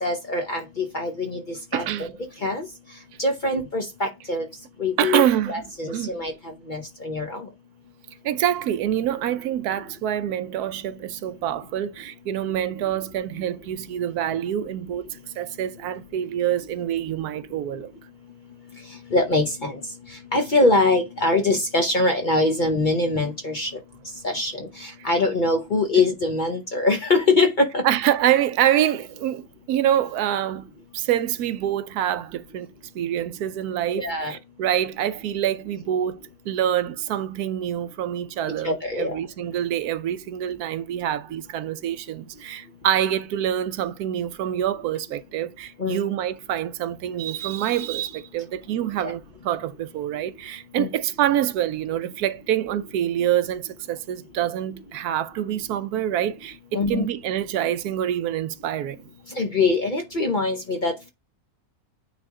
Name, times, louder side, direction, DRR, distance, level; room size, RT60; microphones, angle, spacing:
voice 1, 0.0-2.1 2.4-2.7 3.2-4.5 4.8-7.5 19.1-19.8 20.3-23.7 24.2-27.8 33.9-34.4 38.6-39.2 45.8-46.0 49.0-49.1 50.8-50.9 56.7-57.1 59.4-61.1, left 2 dB, 40° left, 0.8 m, -23 dB
voice 2, 1.7-2.1 5.0-6.2 8.2-15.0 15.4-17.9 25.0-25.1 27.8-32.7 32.9-36.2 36.5-59.1, right 11 dB, 85° right, 1.1 m, -26 dB
9.2 x 3.5 x 3.6 m
omnidirectional pair, 1.6 m